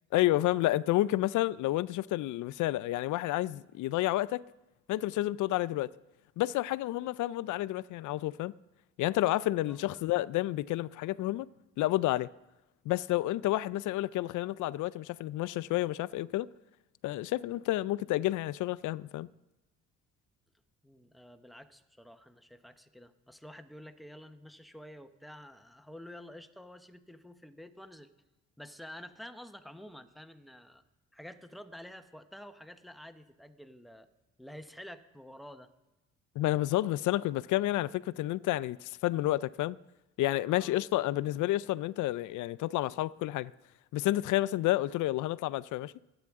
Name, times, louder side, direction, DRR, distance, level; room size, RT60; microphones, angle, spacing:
voice 1, 0.1-4.4 4.9-5.9 6.4-8.5 9.0-11.5 11.8-12.3 12.9-16.5 17.0-19.3 36.4-39.8 40.2-43.5 43.9-45.9, left 16 dB, 80° left, 0.5 m, -30 dB
voice 2, 9.7-10.1 20.8-28.1 28.6-30.8 31.1-34.1 34.4-35.7 40.5-40.8, equal, ahead, 0.9 m, -49 dB
24.0 x 8.8 x 3.6 m
cardioid pair, 90°, 30 cm